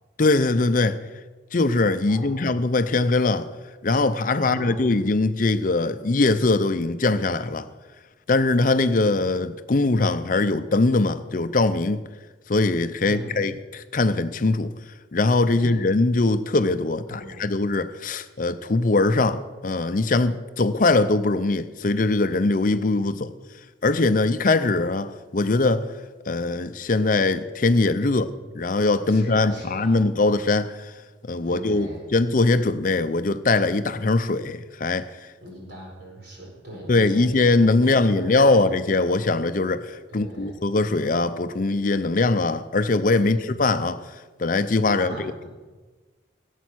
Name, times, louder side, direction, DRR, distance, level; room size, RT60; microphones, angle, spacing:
voice 1, 0.2-1.0 1.5-3.5 3.8-7.7 8.3-12.0 12.5-14.7 15.1-23.3 23.8-25.9 26.3-30.9 31.2-35.1 36.9-45.4, left 3 dB, 45° left, 0.5 m, -22 dB
voice 2, 2.1-2.4 4.4-4.8 13.0-13.4 15.5-15.8 17.2-17.5 28.0-28.3 29.1-30.1 31.5-32.1 35.4-37.5 37.9-38.7 40.1-40.6 43.2-43.6 44.9-45.4, right 1 dB, 60° right, 4.7 m, -39 dB
17.5 x 8.3 x 6.2 m
head